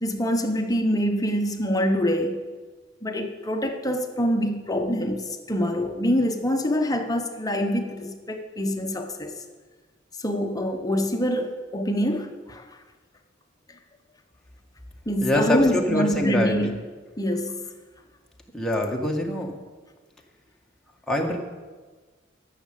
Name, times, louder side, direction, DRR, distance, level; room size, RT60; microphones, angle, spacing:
voice 1, 0.0-2.4 3.0-9.4 10.2-12.6 15.1-16.9 17.2-17.5, equal, 20° left, 4 dB, 1.1 m, -25 dB
voice 2, 15.2-16.6 18.5-19.5 21.1-21.4, left 1 dB, 5° left, -1 dB, 1.6 m, -24 dB
13.5 x 6.6 x 8.5 m, 1.4 s
head